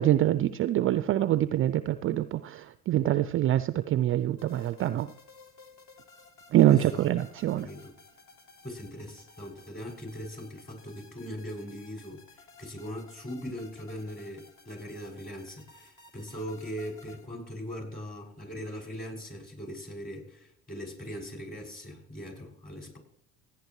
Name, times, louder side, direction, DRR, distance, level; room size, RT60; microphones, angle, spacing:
voice 1, 0.0-5.1 6.5-7.7, right 13 dB, 35° right, 0.4 m, -25 dB
sound 1, 4.4-17.3, left 4 dB, 50° left, 2.8 m, -55 dB
voice 2, 6.7-7.1 7.5-7.9 8.6-12.2 12.6-23.0, equal, 25° left, 6.2 m, -40 dB
16.5 x 9.7 x 3.1 m
hypercardioid pair, 75°, 39 cm